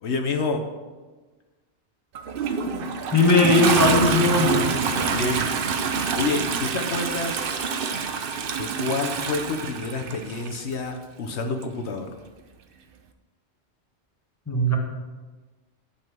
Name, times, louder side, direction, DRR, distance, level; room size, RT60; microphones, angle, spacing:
voice 1, 0.0-0.6 4.9-5.5 6.1-7.6 8.6-12.1, left 3 dB, 70° left, 4 dB, 1.1 m, -28 dB
Toilet flush, 2.1-10.6 11.6-11.7, right 5 dB, 55° right, 0.8 m, -26 dB
voice 2, 3.1-4.7 14.5-14.8, left 2 dB, 15° left, 1 dB, 1.3 m, -19 dB
11.0 x 4.1 x 7.4 m, 1.3 s
omnidirectional pair, 1.2 m